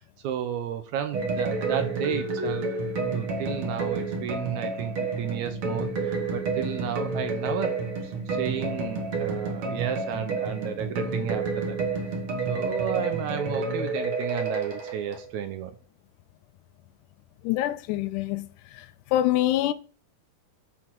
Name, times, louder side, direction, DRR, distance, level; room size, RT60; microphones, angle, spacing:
voice 1, 0.2-2.7 3.1-11.8 12.5-15.7, right 9 dB, 75° right, 1.9 m, -33 dB
sound 1, 1.1-15.2, right 3 dB, 50° right, 1.9 m, -29 dB
voice 2, 17.5-18.5 19.1-19.7, left 14 dB, 80° left, 2.0 m, -24 dB
11.5 x 4.1 x 4.5 m
omnidirectional pair, 3.7 m